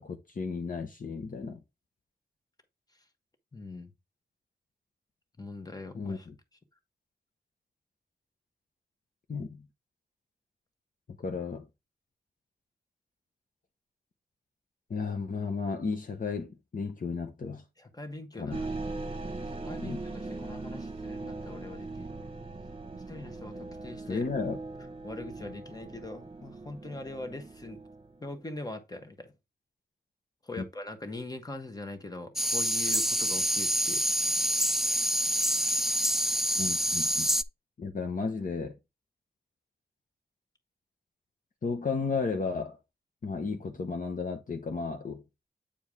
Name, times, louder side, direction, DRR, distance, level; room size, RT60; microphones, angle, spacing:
voice 1, 0.0-1.6 5.9-6.3 9.3-9.7 11.2-11.7 14.9-17.6 18.4-18.6 19.8-20.0 24.1-24.6 30.6-30.7 36.6-37.3 37.8-38.8 41.6-42.8 43.2-45.2, left 4 dB, 55° left, 1.0 m, -33 dB
voice 2, 3.5-3.9 5.4-6.3 17.8-18.7 19.5-22.3 22.9-24.2 25.0-27.8 28.2-29.3 30.4-34.0, left 2 dB, 20° left, 1.3 m, -42 dB
sound 1, 18.5-28.2, right 3 dB, 35° right, 1.2 m, -40 dB
sound 2, 32.4-37.4, right 1 dB, ahead, 0.3 m, -27 dB
8.7 x 4.7 x 3.5 m
wide cardioid pair, 125°, 17 cm